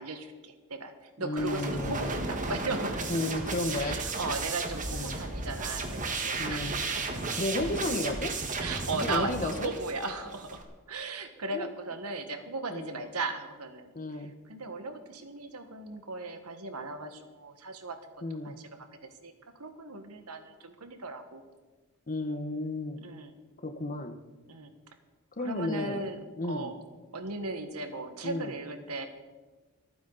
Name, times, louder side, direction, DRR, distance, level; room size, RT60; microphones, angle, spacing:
voice 1, 0.0-3.3 3.7-7.2 8.6-10.6 10.9-13.9 14.5-18.0 18.4-18.8 19.2-19.3 19.6-21.4 23.0-23.3 24.5-24.7 25.4-26.8 27.1-29.1, right 3 dB, 85° right, 7 dB, 1.6 m, -37 dB
voice 2, 1.2-2.2 3.1-4.0 4.9-5.2 6.4-6.8 7.4-8.3 9.0-9.7 11.5-11.7 12.7-13.0 13.9-14.3 18.2-18.5 22.1-23.0 23.6-24.2 25.4-26.1 26.3-26.7 28.2-28.5, left 2 dB, 40° left, 8 dB, 1.2 m, -33 dB
sound 1, 1.4-10.6, right 3 dB, 35° right, 1.7 m, -34 dB
27.5 x 9.4 x 4.1 m, 1.3 s
head